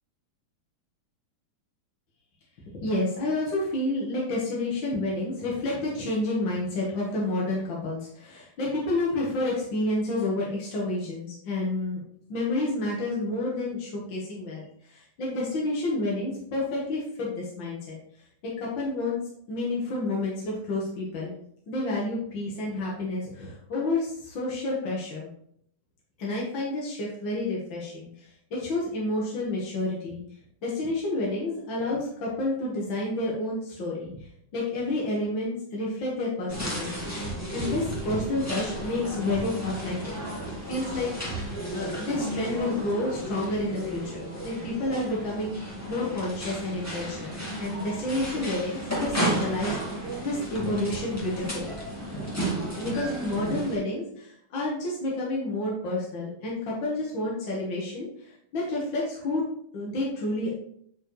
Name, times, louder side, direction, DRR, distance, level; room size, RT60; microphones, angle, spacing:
voice 1, 2.8-12.0 12.3-18.0 18.4-19.2 19.5-21.3 21.7-25.3 26.2-30.2 30.6-34.1 34.5-37.1 37.5-40.1 40.7-41.4 41.7-51.8 52.8-59.4 59.7-60.5, left 2 dB, 50° left, -4 dB, 1.6 m, -30 dB
sound 1, 36.5-53.8, right 1 dB, 10° left, 0.9 m, -33 dB
9.9 x 4.4 x 3.2 m, 0.67 s
omnidirectional pair, 3.8 m